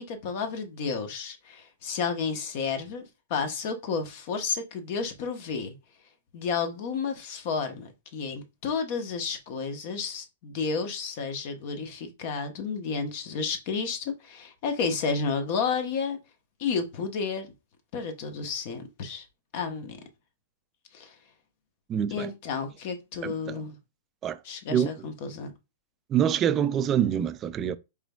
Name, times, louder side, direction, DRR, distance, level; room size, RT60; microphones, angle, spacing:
voice 1, 0.0-3.0 3.3-5.7 6.3-16.2 16.6-17.5 17.9-19.2 19.5-20.0 20.9-21.1 22.1-23.8 24.4-25.5, left 5 dB, 55° left, 1.0 m, -31 dB
voice 2, 21.9-22.3 23.2-23.6 24.2-24.4 24.7-24.9 26.1-27.8, right 9 dB, 30° right, 0.4 m, -25 dB
4.9 x 3.4 x 2.3 m
hypercardioid pair, 115°, 0 cm